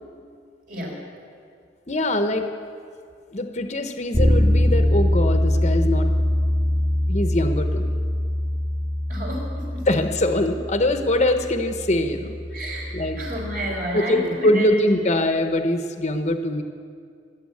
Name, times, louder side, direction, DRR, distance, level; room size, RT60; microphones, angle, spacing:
voice 1, 0.7-1.1 9.1-9.9 12.5-12.9 13.2-14.8, right 1 dB, 50° right, -1 dB, 4.1 m, -31 dB
voice 2, 1.9-2.5 3.3-6.1 7.1-8.0 9.9-12.3 12.9-13.2 13.9-16.6, left 1 dB, 40° left, 6 dB, 0.9 m, -23 dB
Bass guitar, 4.1-13.9, left 1 dB, 25° right, 2.0 m, -23 dB
18.5 x 8.9 x 8.5 m, 2.3 s
head